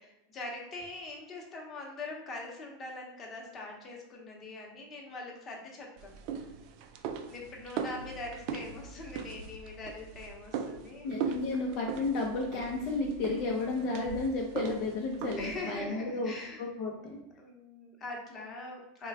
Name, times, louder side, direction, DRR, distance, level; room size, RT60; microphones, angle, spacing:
voice 1, 0.0-6.2 7.3-11.3 15.4-16.6 17.4-19.1, left 2 dB, 30° left, 0 dB, 0.9 m, -43 dB
sound 1, 6.0-15.7, right 6 dB, 60° right, 0.3 m, -39 dB
voice 2, 11.0-17.2, left 3 dB, 55° left, -1 dB, 0.6 m, -32 dB
3.1 x 2.2 x 3.4 m, 0.95 s
hypercardioid pair, 95°, 0 cm